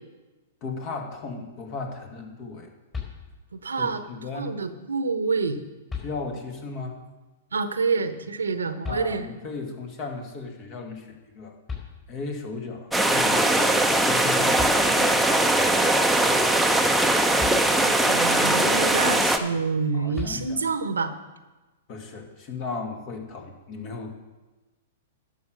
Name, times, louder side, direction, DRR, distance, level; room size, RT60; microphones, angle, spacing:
voice 1, 0.6-2.7 3.8-4.5 6.0-7.0 8.9-11.5 12.1-15.3 19.5-19.6 19.9-20.6 21.9-24.1, left 4 dB, 40° left, 3 dB, 2.1 m, -36 dB
sound 1, 2.9-3.7 5.2-5.3 5.9-6.6 8.8-9.6 11.3-11.4 11.7-12.5 14.2-14.3 14.6-15.3 17.4-18.2 20.1-20.9, left 5 dB, 20° left, 4.4 m, -38 dB
voice 2, 3.6-4.0 4.3-5.6 7.5-9.3 17.8-21.2, right 4 dB, 80° right, 11 dB, 0.9 m, -27 dB
sound 2, 12.9-19.4, right 1 dB, ahead, 0.9 m, -20 dB
11.5 x 6.5 x 6.6 m, 1.1 s
hypercardioid pair, 110°, 0 cm